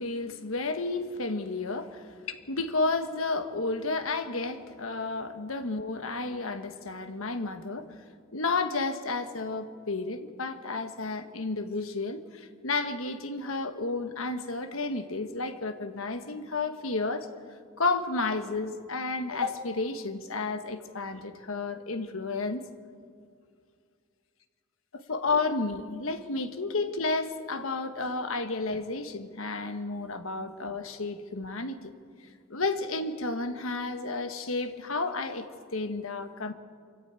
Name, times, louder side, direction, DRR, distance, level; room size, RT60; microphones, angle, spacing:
voice 1, 0.0-1.9 2.5-7.9 8.3-17.3 17.8-22.6 24.9-31.9 32.5-36.5, left 3 dB, 75° left, 8 dB, 1.4 m, -31 dB
23.5 x 14.0 x 9.0 m, 2.2 s
head